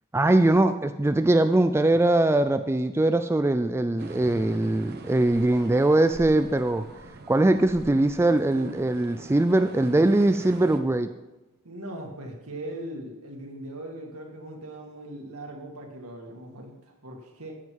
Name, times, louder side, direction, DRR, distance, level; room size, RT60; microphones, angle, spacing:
voice 1, 0.1-6.9 7.3-11.1, right 2 dB, 10° right, 9 dB, 0.3 m, -21 dB
sound 1, 4.0-10.8, right 2 dB, 45° right, 0.9 m, -44 dB
voice 2, 11.6-17.6, right 1 dB, 75° right, 2 dB, 2.0 m, -39 dB
14.5 x 7.6 x 4.8 m, 1.0 s
head